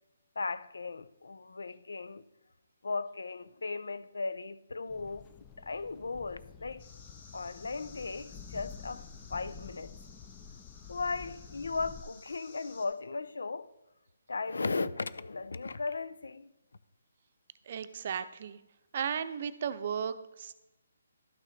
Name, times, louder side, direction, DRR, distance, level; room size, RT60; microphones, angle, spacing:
voice 1, 0.4-2.2 2.8-5.3 5.6-6.9 7.3-10.0 10.9-13.7 14.3-16.5, left 4 dB, 85° left, 0.6 m, -37 dB
sound 1, 4.9-12.0, left 7 dB, 20° left, 0.5 m, -49 dB
sound 2, 6.8-12.9, left 4 dB, 50° left, 3.0 m, -56 dB
voice 2, 17.7-18.6 18.9-20.6, right 7 dB, 45° right, 0.6 m, -35 dB
12.0 x 6.3 x 4.2 m
hypercardioid pair, 155°, 0 cm